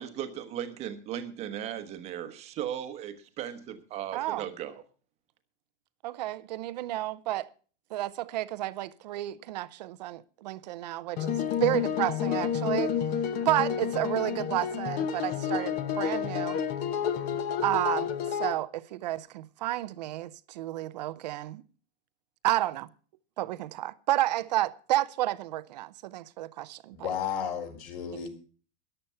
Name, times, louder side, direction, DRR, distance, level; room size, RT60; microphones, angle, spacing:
voice 1, 0.0-4.8, right 10 dB, 20° right, 1.1 m, -37 dB
voice 2, 4.1-4.4 6.0-7.5 7.9-13.0 13.4-16.6 17.6-21.6 22.4-22.9 23.4-27.0, right 15 dB, 40° right, 0.6 m, -31 dB
sound 1, 11.2-18.5, left 8 dB, 25° left, 0.8 m, -30 dB
voice 3, 26.9-28.3, left 8 dB, 40° left, 4.0 m, -33 dB
13.5 x 11.0 x 5.5 m
supercardioid pair, 175°, 35 cm